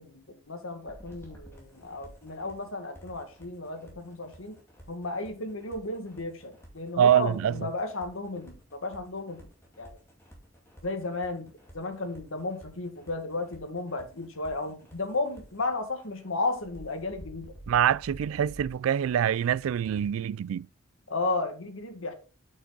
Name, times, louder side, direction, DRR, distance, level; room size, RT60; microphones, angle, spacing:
voice 1, 0.0-4.6 4.9-9.5 9.8-10.0 10.8-17.5 21.1-22.1, left 2 dB, 80° left, 1.7 m, -34 dB
sound 1, 0.8-2.7 2.9-20.1, equal, 10° left, 2.2 m, -51 dB
voice 2, 7.0-7.7 17.7-20.7, right 9 dB, 85° right, 0.3 m, -25 dB
8.0 x 6.1 x 3.9 m
head